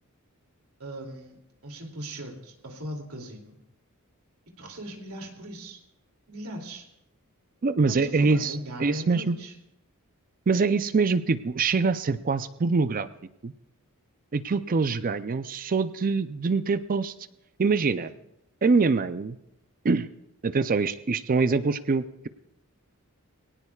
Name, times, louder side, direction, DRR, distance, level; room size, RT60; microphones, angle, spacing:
voice 1, 0.8-1.4 1.6-3.6 4.6-5.8 6.3-6.9 7.9-9.5 18.0-18.1, right 1 dB, 80° right, 2 dB, 2.7 m, -39 dB
voice 2, 7.6-9.4 10.5-13.1 13.4-13.5 14.3-17.1 17.6-18.1 18.6-19.4 19.8-20.1 20.4-22.3, right 4 dB, 40° right, 13 dB, 0.5 m, -24 dB
23.0 x 18.0 x 2.4 m, 0.84 s
head